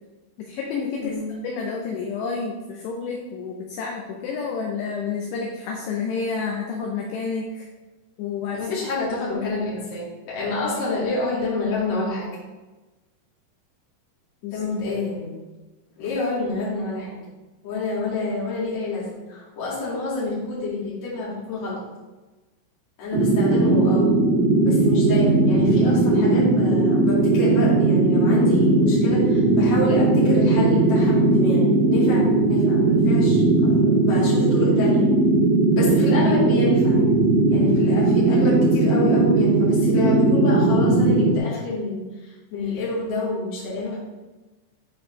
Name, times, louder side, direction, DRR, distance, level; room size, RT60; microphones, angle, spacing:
voice 1, 0.4-1.1 1.4-7.7 8.2-8.6 9.5-9.9 14.4-14.6, left 5 dB, 80° left, 0 dB, 2.6 m, -30 dB
voice 2, 8.5-12.4 14.5-15.3 16.0-17.2 17.6-21.8 23.0-24.1 24.6-35.1 35.7-37.1 37.5-44.0, left 3 dB, 45° left, -8 dB, 2.9 m, -28 dB
sound 1, 23.1-41.4, right 2 dB, 75° right, 2.2 m, -18 dB
9.2 x 4.3 x 3.3 m, 1.2 s
omnidirectional pair, 5.4 m